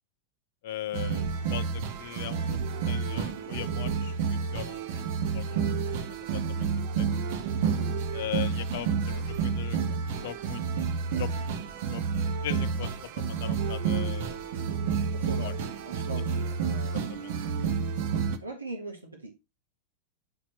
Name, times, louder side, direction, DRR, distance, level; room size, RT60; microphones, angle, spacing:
voice 1, 0.6-2.6 2.9-7.1 8.1-9.8 10.2-10.6 11.2-11.5 11.9-12.1 12.4-14.4 15.2-15.5 16.9-17.4, left 12 dB, 55° left, 0.5 m, -40 dB
sound 1, 0.9-18.4, right 6 dB, 50° right, 0.8 m, -30 dB
voice 2, 15.1-15.6 15.8-16.9 18.4-19.3, right 2 dB, 80° right, 1.5 m, -40 dB
7.8 x 4.3 x 4.1 m
figure-of-eight pair, 90°, 0 cm